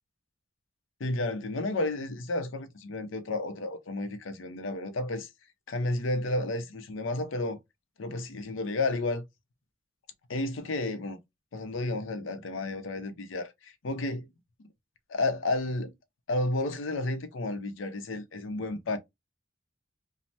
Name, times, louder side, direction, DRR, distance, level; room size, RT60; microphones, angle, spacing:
voice 1, 1.0-5.3 5.7-7.6 8.0-9.2 10.3-11.2 11.5-14.3 15.1-15.9 16.3-19.0, left 2 dB, 90° left, 0.6 m, -31 dB
3.1 x 2.0 x 2.7 m
head